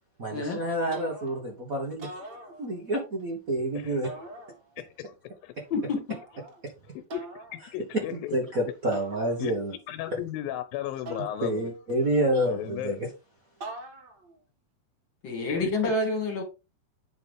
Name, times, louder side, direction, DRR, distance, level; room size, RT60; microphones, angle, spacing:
voice 1, 0.2-2.1 2.6-4.1 8.1-9.7 11.4-13.1, right 1 dB, 85° right, 0.7 m, -28 dB
sound 1, 0.9-1.5 1.9-3.0 4.0-4.9 6.1-6.6 7.1-7.6 8.9-9.8 11.1-12.0 13.6-14.4, right 2 dB, 45° right, 1.4 m, -43 dB
voice 2, 4.8-5.1 5.4-5.5 7.1-7.4 7.7-8.3 9.4-9.5 9.9-11.7 12.4-13.0 15.5-15.7, left 13 dB, 85° left, 2.4 m, -35 dB
voice 3, 5.7-6.2 15.2-16.4, left 2 dB, 40° left, 2.3 m, -28 dB
8.9 x 5.6 x 3.5 m
omnidirectional pair, 4.1 m